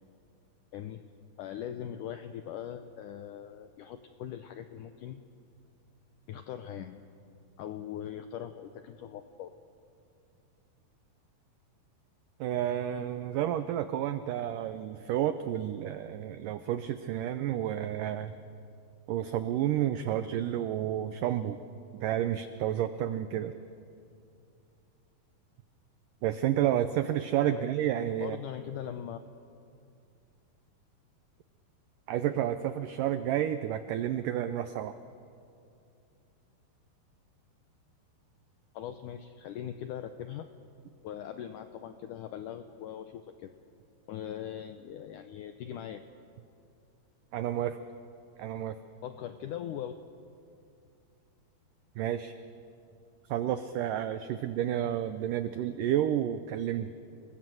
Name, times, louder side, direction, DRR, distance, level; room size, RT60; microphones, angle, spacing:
voice 1, 0.7-1.0 1.4-5.2 6.3-7.0 7.6-9.5 27.5-27.7 28.2-29.2 38.7-40.5 41.0-43.5 44.1-46.0 49.0-49.9, left 10 dB, 85° left, 8 dB, 1.8 m, -40 dB
voice 2, 12.4-18.3 19.1-21.6 22.0-23.5 26.2-28.4 32.1-35.0 47.3-47.8 48.4-48.8 52.0-52.3 53.3-56.9, right 11 dB, 85° right, 11 dB, 1.8 m, -30 dB
30.0 x 20.0 x 7.7 m, 2.5 s
omnidirectional pair, 4.7 m